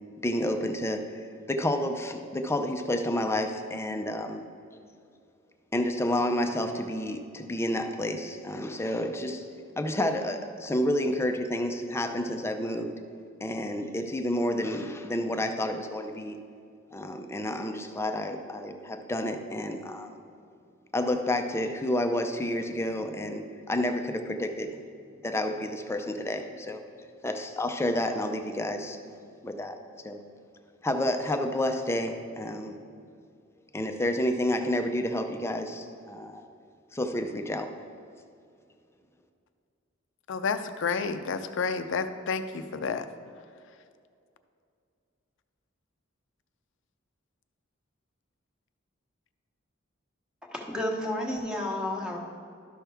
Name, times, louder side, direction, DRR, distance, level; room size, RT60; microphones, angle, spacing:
voice 1, 0.2-4.4 5.7-9.4 9.8-12.9 13.4-16.4 16.9-20.2 20.9-24.8 25.2-26.8 27.2-29.7 30.0-30.2 30.8-32.8 33.7-36.4 36.9-37.7, left 1 dB, 15° left, 6 dB, 0.5 m, -30 dB
voice 2, 40.3-43.0, left 5 dB, 65° left, 10 dB, 0.5 m, -30 dB
voice 3, 50.5-52.2, left 1 dB, 5° right, -1 dB, 1.1 m, -31 dB
12.0 x 5.9 x 3.4 m, 2.4 s
head